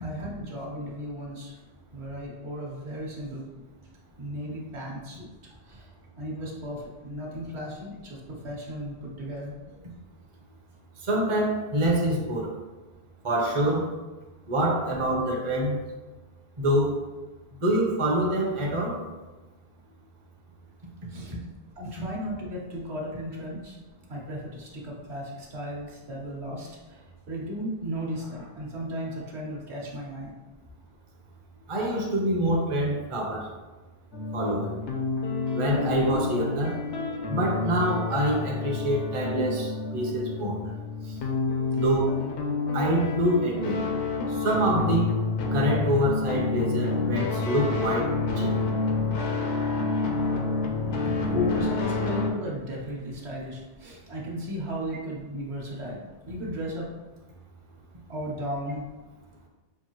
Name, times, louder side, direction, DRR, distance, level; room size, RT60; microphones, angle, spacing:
voice 1, 0.0-1.6 1.9-3.5 4.2-5.3 5.6-9.6 21.1-21.3 21.8-23.8 24.1-30.3 40.6-40.7 51.3-56.9 58.1-58.8, equal, 70° right, -3 dB, 1.2 m, -35 dB
voice 2, 11.1-12.5 13.2-13.9 14.5-15.8 16.6-17.0 17.6-19.0 31.7-33.5 34.3-34.7 35.5-36.8 37.3-40.6 41.7-42.2 42.7-43.8 44.3-45.1 45.5-48.5, right 1 dB, 35° right, -1 dB, 0.7 m, -26 dB
sound 1, 34.1-52.3, left 3 dB, 85° left, 1.0 m, -29 dB
5.7 x 2.6 x 2.9 m, 1.2 s
omnidirectional pair, 1.2 m